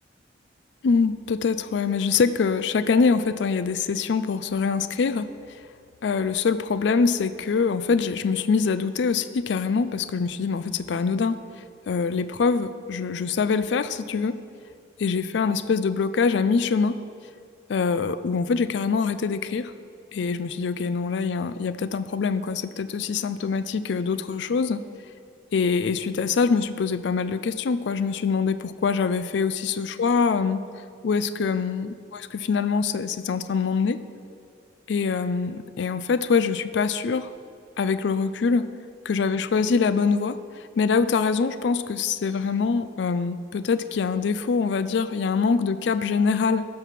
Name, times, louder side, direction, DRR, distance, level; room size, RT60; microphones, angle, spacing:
voice 1, 0.8-5.6 6.0-11.4 11.9-14.3 15.0-17.0 17.7-19.7 20.1-24.8 25.5-30.6 31.0-34.0 34.9-37.3 37.8-38.6 39.1-46.7, left 5 dB, 65° left, 13 dB, 0.4 m, -24 dB
13.0 x 5.4 x 5.8 m, 2.3 s
head